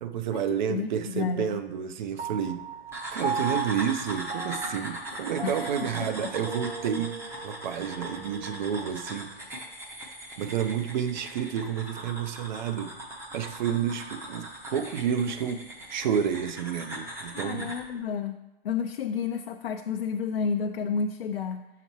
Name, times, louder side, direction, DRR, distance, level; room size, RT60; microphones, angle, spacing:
voice 1, 0.0-2.6 3.1-7.2 7.4-9.3 10.4-12.9 13.3-17.7, right 8 dB, 45° right, 8 dB, 0.6 m, -30 dB
voice 2, 0.7-1.6 5.4-6.3 17.3-18.4 18.6-21.7, left 6 dB, 65° left, 5 dB, 0.5 m, -31 dB
Piano, 2.2-8.9, right 5 dB, 85° right, 0.6 m, -37 dB
sound 1, 2.9-17.9, right 1 dB, 10° right, 0.7 m, -40 dB
6.9 x 5.8 x 3.0 m, 0.96 s
figure-of-eight pair, 120°, 31 cm